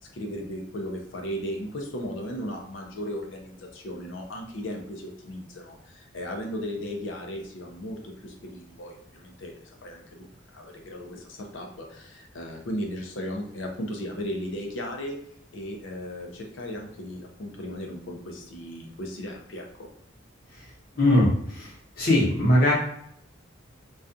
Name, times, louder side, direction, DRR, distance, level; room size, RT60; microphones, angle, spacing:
voice 1, 0.0-15.2 15.5-19.9, equal, 70° left, 2 dB, 0.5 m, -36 dB
voice 2, 21.0-21.7 22.0-22.7, left 1 dB, 50° left, -5 dB, 0.9 m, -20 dB
2.3 x 2.3 x 2.5 m, 0.69 s
head